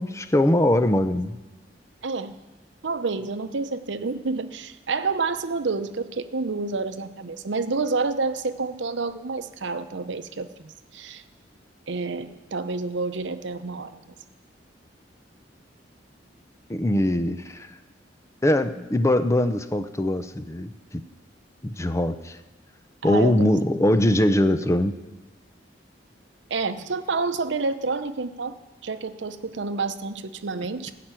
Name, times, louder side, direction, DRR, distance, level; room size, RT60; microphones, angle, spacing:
voice 1, 0.0-1.4 16.7-17.7 18.4-20.7 21.6-22.4 23.0-24.9, left 1 dB, 15° left, 10 dB, 0.5 m, -22 dB
voice 2, 2.0-2.4 2.8-11.2 11.9-14.1 23.0-23.5 26.5-30.9, right 4 dB, 80° right, 11 dB, 0.7 m, -29 dB
16.0 x 5.9 x 9.0 m, 1.1 s
head